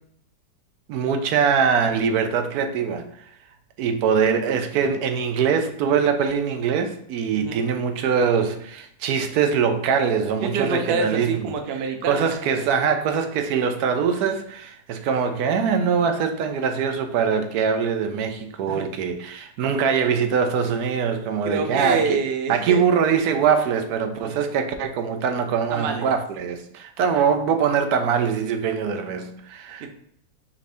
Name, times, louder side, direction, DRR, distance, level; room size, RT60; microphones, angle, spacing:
voice 1, 0.9-3.1 3.8-11.5 12.1-22.2 22.5-29.9, right 6 dB, 70° right, 1.0 m, -23 dB
voice 2, 10.4-12.3 12.8-12.9 18.7-18.8 21.4-22.8 24.2-24.4 25.7-26.1 29.8-29.9, right 4 dB, 90° right, 0.5 m, -27 dB
5.0 x 2.6 x 3.3 m
omnidirectional pair, 1.8 m